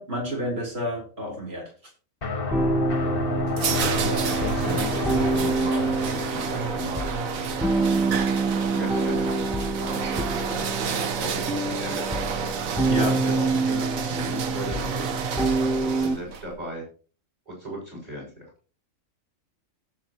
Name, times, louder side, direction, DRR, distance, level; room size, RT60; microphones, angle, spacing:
voice 1, 0.0-1.7 12.9-13.2, equal, 50° right, -2 dB, 4.0 m, -30 dB
sound 1, 2.2-8.9, left 2 dB, 45° left, 1.4 m, -31 dB
sound 2, 2.5-16.2, right 2 dB, ahead, 0.5 m, -27 dB
sound 3, 2.9-16.5, right 6 dB, 85° right, 1.4 m, -30 dB
voice 2, 3.6-5.9 6.5-7.2 7.4-8.0 8.7-12.1 13.2-15.1 15.8-16.8 17.5-18.5, equal, 35° right, -2 dB, 6.1 m, -36 dB
17.5 x 7.4 x 3.0 m, 0.39 s
omnidirectional pair, 1.4 m